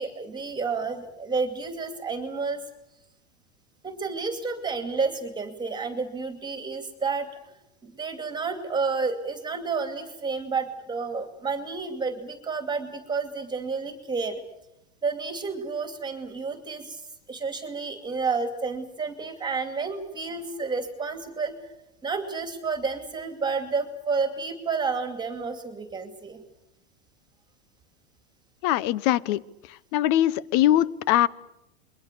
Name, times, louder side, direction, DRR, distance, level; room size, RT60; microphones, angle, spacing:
voice 1, 0.0-2.6 3.8-7.3 7.8-14.4 15.0-17.0 17.3-21.5 22.0-26.4, right 4 dB, 15° right, 7 dB, 2.6 m, -30 dB
voice 2, 28.6-29.4 29.7-31.3, left 13 dB, 50° left, 20 dB, 1.0 m, -22 dB
27.5 x 22.5 x 6.9 m, 0.84 s
supercardioid pair, 125°, 31 cm